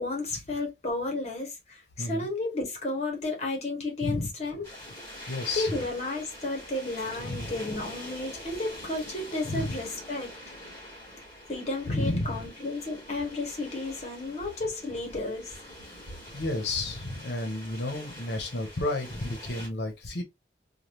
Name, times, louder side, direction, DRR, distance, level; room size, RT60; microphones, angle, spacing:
voice 1, 0.0-4.7 5.5-10.3 11.5-15.6, left 2 dB, 35° left, 1.1 m, -32 dB
sound 1, 4.6-19.7, equal, 15° left, 1.8 m, -45 dB
voice 2, 5.3-5.7 7.2-7.5 9.4-9.7 11.9-12.4 16.3-20.2, left 2 dB, 70° left, 0.9 m, -31 dB
3.3 x 2.3 x 2.8 m
head